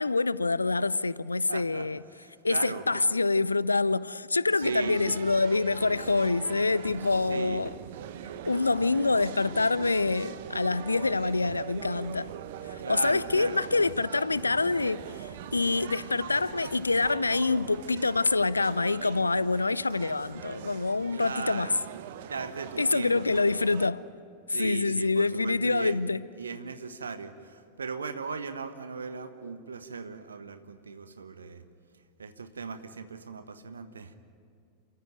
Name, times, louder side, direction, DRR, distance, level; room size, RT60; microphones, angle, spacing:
voice 1, 0.0-2.0 2.4-7.7 8.4-12.3 12.7-21.8 22.8-24.0 24.5-26.2, left 3 dB, 80° left, 0.5 m, -26 dB
voice 2, 1.5-1.9 2.2-2.8 4.6-5.2 7.1-7.6 12.8-13.6 21.1-21.8 22.2-23.5 24.5-26.0 26.4-31.6 32.2-34.1, right 5 dB, 75° right, 1.3 m, -37 dB
sound 1, 4.6-23.9, right 9 dB, 55° right, 1.1 m, -42 dB
28.5 x 14.5 x 9.0 m
figure-of-eight pair, 90°, 0 cm